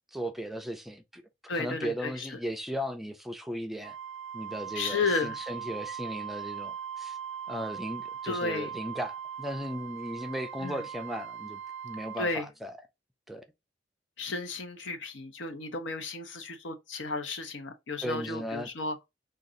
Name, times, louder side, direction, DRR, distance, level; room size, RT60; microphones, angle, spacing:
voice 1, 0.1-1.2 1.5-4.0 4.3-7.2 7.5-12.8 13.3-13.4 18.0-18.7, equal, ahead, 0.3 m, -36 dB
voice 2, 1.5-2.3 4.8-5.3 8.3-8.7 10.6-10.8 12.2-12.5 14.2-19.0, left 3 dB, 85° left, 0.7 m, -33 dB
Wind instrument woodwind instrument, 3.8-12.4, right 8 dB, 75° right, 0.4 m, -40 dB
2.5 x 2.3 x 3.8 m
head